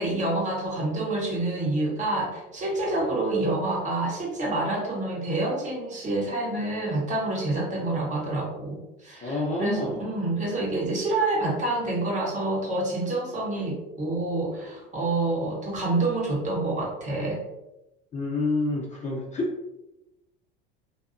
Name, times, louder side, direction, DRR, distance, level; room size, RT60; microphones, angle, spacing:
voice 1, 0.0-17.4, right 2 dB, 25° right, -3 dB, 1.0 m, -27 dB
voice 2, 9.2-10.1 18.1-19.5, left 2 dB, 25° left, -2 dB, 0.6 m, -28 dB
2.7 x 2.3 x 2.4 m, 0.93 s
hypercardioid pair, 80°, 29 cm